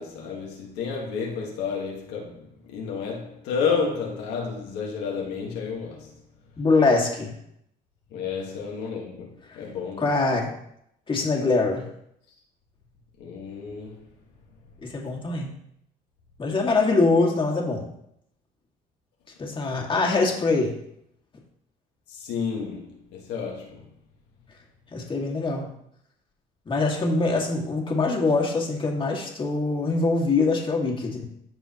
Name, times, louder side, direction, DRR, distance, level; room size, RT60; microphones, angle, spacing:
voice 1, 0.0-6.2 8.1-10.1 13.2-14.1 22.1-23.9, left 5 dB, 90° left, 1.6 m, -31 dB
voice 2, 6.6-7.3 10.0-10.5 11.1-11.8 14.8-15.5 16.4-17.9 19.4-20.7 24.9-25.7 26.7-31.2, left 3 dB, 30° left, 2.1 m, -23 dB
14.5 x 4.8 x 3.0 m
cardioid pair, 110°, 17 cm